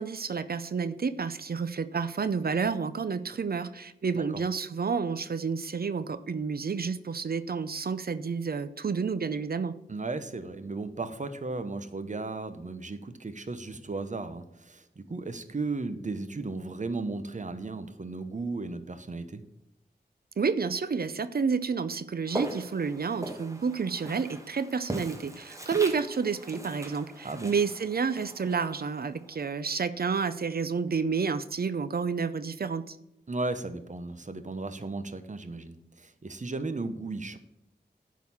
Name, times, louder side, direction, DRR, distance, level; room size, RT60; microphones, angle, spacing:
voice 1, 0.0-9.7 20.4-33.0, right 5 dB, 60° right, 13 dB, 0.6 m, -30 dB
voice 2, 9.9-19.4 27.2-27.5 33.3-37.4, right 3 dB, 45° right, 10 dB, 0.9 m, -35 dB
Walk footsteps, 22.3-29.4, right 1 dB, 15° right, 1.4 m, -41 dB
11.0 x 4.1 x 7.1 m, 0.84 s
wide cardioid pair, 60°, 18 cm